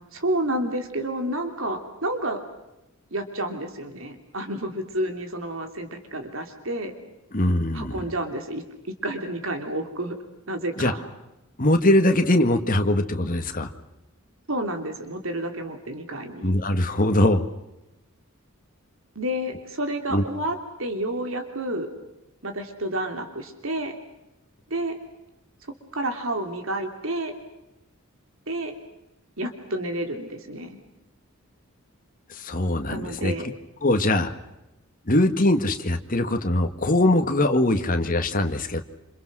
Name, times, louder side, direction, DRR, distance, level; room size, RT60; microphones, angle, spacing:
voice 1, 0.1-2.4 3.1-6.9 7.7-10.2 10.5-11.0 14.5-16.5 19.1-21.9 22.4-24.0 24.7-25.0 25.9-27.3 28.5-28.7 29.4-30.8 32.9-33.5, right 1 dB, 70° right, 6 dB, 3.1 m, -30 dB
voice 2, 7.3-8.1 10.8-10.9 11.6-13.7 16.4-17.4 20.1-20.2 32.3-33.3 33.8-34.3 35.1-38.8, left 1 dB, 40° left, 6 dB, 1.9 m, -22 dB
28.0 x 28.0 x 6.3 m, 0.95 s
head